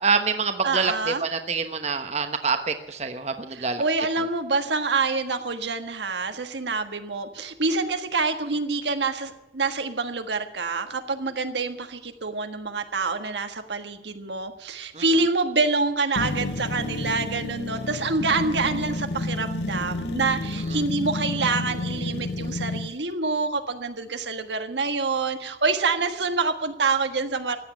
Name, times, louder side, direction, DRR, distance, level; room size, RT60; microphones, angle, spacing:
voice 1, 0.0-3.8 14.9-15.0 20.7-20.8, right 4 dB, 40° right, 7 dB, 1.1 m, -26 dB
voice 2, 0.6-1.2 3.5-27.6, right 3 dB, 85° right, 7 dB, 1.5 m, -26 dB
sound 1, 16.2-22.9, left 2 dB, 80° left, 0.7 m, -30 dB
15.0 x 9.4 x 9.4 m, 0.94 s
head